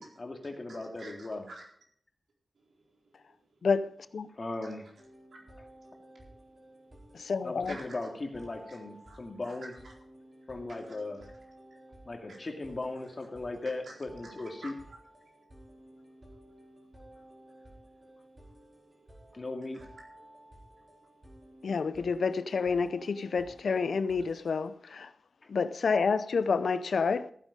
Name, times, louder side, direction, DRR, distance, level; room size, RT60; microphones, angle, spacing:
voice 1, 0.0-1.4 4.3-4.8 7.4-9.7 10.5-11.3 12.1-14.7 19.3-19.8, left 2 dB, 40° left, 2.3 m, -38 dB
voice 2, 0.7-1.6 2.6-3.1 3.4-3.5 5.3-5.6 6.3-7.2 7.6-8.0 8.7-8.8 9.1-9.2 9.4-9.9 10.2-10.9 11.8-11.9 12.3-12.4 13.8-14.0 14.2-15.0 15.2-16.0 16.2-16.7 17.4-18.6 18.9-19.3 19.7-19.9 20.7-21.5, right 2 dB, 75° right, 4.2 m, -53 dB
voice 3, 3.6-4.3 7.1-7.8 21.6-25.1 25.5-27.3, left 5 dB, 80° left, 0.6 m, -29 dB
sound 1, 5.0-24.7, right 1 dB, 30° right, 4.4 m, -55 dB
15.0 x 9.2 x 5.2 m
wide cardioid pair, 110°, 0 cm